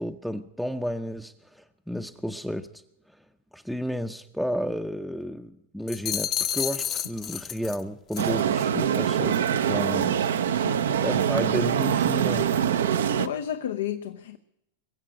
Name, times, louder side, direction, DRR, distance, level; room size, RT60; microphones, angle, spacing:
voice 1, 0.0-2.8 3.1-3.2 3.5-12.6, equal, ahead, 0.6 m, -32 dB
sound 1, 5.9-7.8 8.1-8.4, left 10 dB, 35° left, 0.8 m, -30 dB
sound 2, 8.2-13.3, right 9 dB, 75° right, 0.7 m, -24 dB
voice 2, 10.6-10.9 13.2-14.4, left 10 dB, 75° left, 0.7 m, -32 dB
21.5 x 7.6 x 8.8 m
hypercardioid pair, 100°, 0 cm